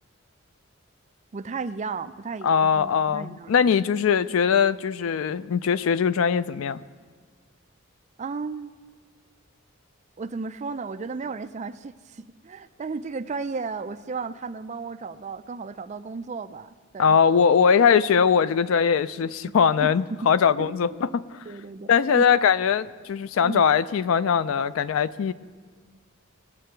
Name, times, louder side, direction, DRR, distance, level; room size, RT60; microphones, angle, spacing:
voice 1, 1.3-3.7 8.2-8.7 10.2-17.2 19.5-20.3 20.6-21.0 21.5-21.9 22.1-22.2 23.4-23.7, right 4 dB, 35° right, 11 dB, 0.4 m, -34 dB
voice 2, 2.4-6.8 17.0-21.4 21.9-25.3, left 6 dB, 75° left, 16 dB, 0.4 m, -21 dB
20.0 x 7.5 x 4.5 m, 1.5 s
head